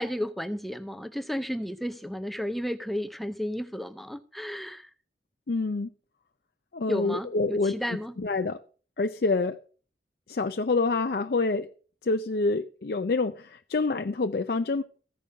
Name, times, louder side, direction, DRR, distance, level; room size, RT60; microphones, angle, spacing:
voice 1, 0.0-4.9 6.9-8.1, equal, ahead, 8 dB, 0.5 m, -33 dB
voice 2, 5.5-5.9 6.7-7.8 8.2-8.6 9.0-9.6 10.3-11.7 12.0-14.8, left 3 dB, 55° left, 7 dB, 0.5 m, -27 dB
15.0 x 5.4 x 6.4 m, 0.41 s
head